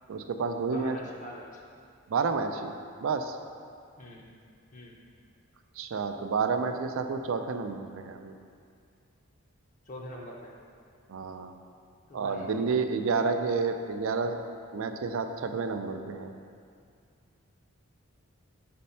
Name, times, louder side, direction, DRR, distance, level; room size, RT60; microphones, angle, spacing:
voice 1, 0.1-1.0 2.1-2.7 3.0-3.4 5.8-8.4 11.1-11.5 12.1-14.4 14.7-16.3, right 4 dB, 65° right, 7 dB, 0.4 m, -30 dB
voice 2, 0.7-1.6 4.0-4.3 4.7-5.0 9.9-10.5 12.1-12.5, left 1 dB, 35° left, -2 dB, 0.5 m, -44 dB
4.3 x 4.1 x 5.5 m, 2.3 s
head